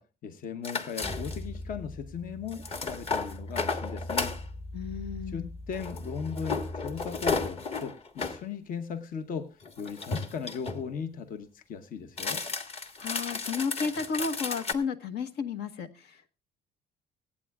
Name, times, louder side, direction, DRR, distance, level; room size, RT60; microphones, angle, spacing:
voice 1, 0.0-4.3 5.3-12.4, left 6 dB, 55° left, 0.9 m, -38 dB
sound 1, 0.6-1.6 2.5-4.4 5.7-8.4 9.6-10.8 12.1-14.7, left 4 dB, 35° left, 1.3 m, -33 dB
sound 2, 1.0-7.6, left 1 dB, 15° left, 1.2 m, -41 dB
voice 2, 4.7-5.5 13.0-16.3, left 5 dB, 75° left, 1.2 m, -33 dB
25.0 x 8.5 x 2.4 m
cardioid pair, 110°, 17 cm